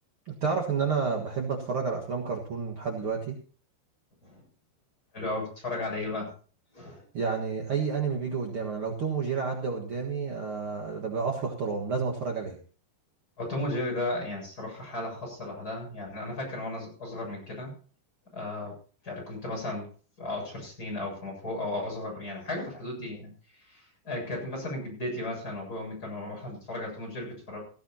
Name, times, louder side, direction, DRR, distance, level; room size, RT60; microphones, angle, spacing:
voice 1, 0.2-3.4 7.1-12.5, right 5 dB, 65° right, 0 dB, 1.3 m, -30 dB
voice 2, 5.1-6.3 6.7-7.0 13.4-17.7 18.3-18.8 19.0-19.9 20.2-27.6, left 2 dB, 20° left, -1 dB, 7.9 m, -35 dB
17.0 x 16.0 x 2.8 m, 0.40 s
omnidirectional pair, 5.1 m